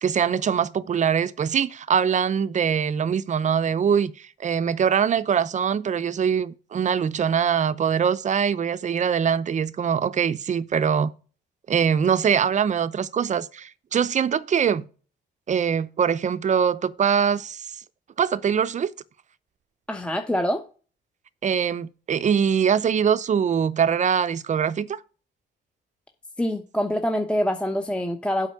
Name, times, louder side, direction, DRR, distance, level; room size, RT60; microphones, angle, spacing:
voice 1, 0.0-11.1 11.7-14.9 15.5-17.6 18.2-18.9 21.4-25.0, right 7 dB, 40° right, 0.6 m, -23 dB
voice 2, 19.9-20.6 26.4-28.5, equal, 5° left, 0.9 m, -25 dB
8.2 x 5.4 x 6.7 m
cardioid pair, 110°, 20 cm